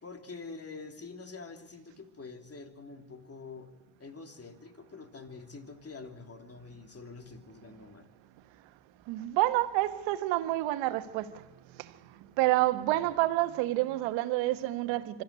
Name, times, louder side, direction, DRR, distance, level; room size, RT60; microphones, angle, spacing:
voice 1, 0.0-3.7 4.0-8.1, left 4 dB, 30° left, 3.1 m, -46 dB
voice 2, 9.1-15.2, right 17 dB, 75° right, 1.2 m, -29 dB
25.0 x 13.5 x 9.8 m
hypercardioid pair, 55°, 45 cm